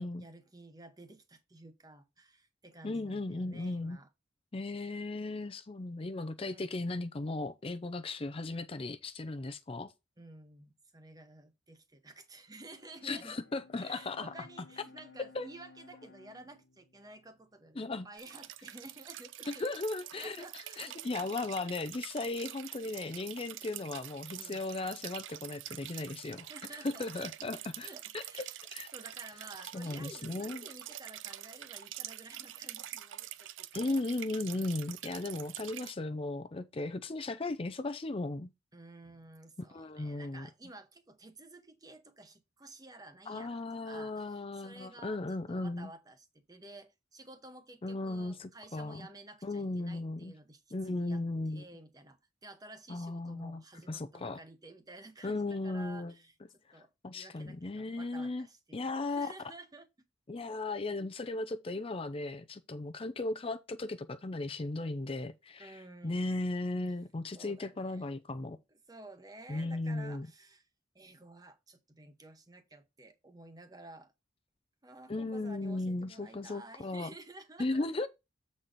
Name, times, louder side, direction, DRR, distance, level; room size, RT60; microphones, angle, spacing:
voice 1, 0.0-4.1 6.4-6.7 10.2-13.4 13.8-19.6 20.2-21.3 24.4-24.6 26.5-27.3 27.8-34.0 38.7-51.2 51.5-59.9 65.6-66.2 67.3-68.1 68.7-70.7 70.9-74.1 74.8-78.1, right 2 dB, 20° right, 0.9 m, -53 dB
voice 2, 2.8-4.0 4.5-9.9 13.0-14.3 15.3-15.5 17.8-18.1 19.5-20.4 20.8-26.5 26.8-28.2 28.7-28.9 29.7-30.7 33.7-38.5 39.7-40.5 43.3-45.9 47.8-49.1 49.4-50.3 50.7-51.7 52.9-54.4 55.2-56.1 56.7-58.5 58.7-59.3 60.3-68.6 69.5-70.3 75.1-77.1 77.6-78.1, left 2 dB, 30° left, 0.5 m, -36 dB
Bowed string instrument, 12.6-18.1, left 3 dB, 70° left, 1.1 m, -59 dB
sound 1, 18.2-35.9, right 13 dB, 85° right, 0.5 m, -46 dB
7.5 x 4.2 x 4.9 m
head